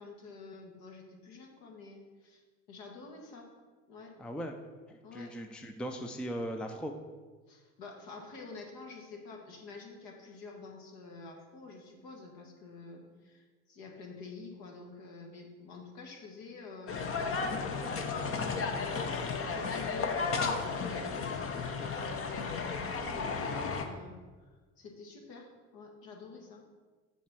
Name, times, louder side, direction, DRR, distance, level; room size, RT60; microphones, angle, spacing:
voice 1, 0.0-2.4 2.7-3.5 3.9-4.1 5.0-5.3 7.5-24.1 24.5-26.6, left 4 dB, 60° left, 1 dB, 1.9 m, -48 dB
voice 2, 4.2-4.5 4.9-6.9, equal, 5° left, 4 dB, 0.5 m, -38 dB
sound 1, 16.9-23.8, left 4 dB, 35° left, 0.9 m, -34 dB
7.2 x 4.3 x 6.1 m, 1.4 s
hypercardioid pair, 75°, 40 cm